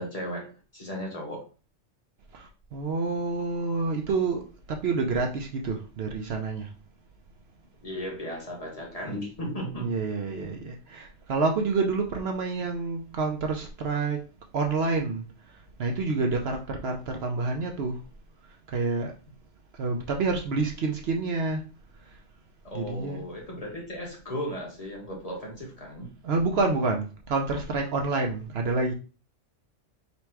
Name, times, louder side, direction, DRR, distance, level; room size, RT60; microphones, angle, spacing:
voice 1, 0.0-1.5 7.8-10.0 22.6-26.1, equal, 30° left, 1.3 m, -36 dB
voice 2, 2.3-6.7 9.8-14.2 14.5-18.0 18.5-19.1 19.7-21.6 22.0-22.2 22.7-23.2 26.2-28.9, right 3 dB, 65° right, 0.8 m, -28 dB
4.0 x 2.3 x 4.4 m
omnidirectional pair, 1.3 m